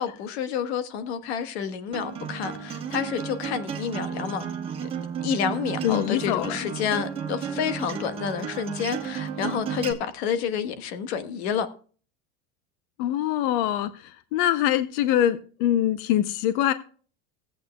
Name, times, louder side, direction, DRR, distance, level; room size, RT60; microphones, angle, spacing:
voice 1, 0.0-4.4 5.2-11.7, left 8 dB, 90° left, 1.3 m, -29 dB
Acoustic guitar, 1.9-9.9, right 7 dB, 15° right, 1.1 m, -33 dB
voice 2, 5.8-6.6 13.0-16.7, left 12 dB, 55° left, 0.6 m, -24 dB
17.0 x 8.5 x 2.2 m
cardioid pair, 175°, 32 cm